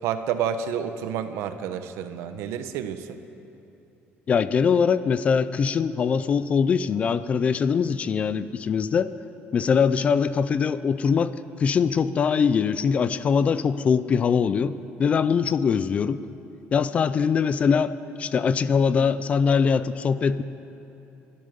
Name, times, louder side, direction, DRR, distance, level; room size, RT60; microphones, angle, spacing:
voice 1, 0.0-3.2, right 8 dB, 80° right, 10 dB, 0.9 m, -29 dB
voice 2, 4.3-9.1 9.5-11.3 11.6-16.2 16.7-17.9 18.2-20.4, left 6 dB, 30° left, 15 dB, 0.4 m, -22 dB
21.5 x 12.5 x 5.2 m, 2.9 s
cardioid pair, 165°, 5 cm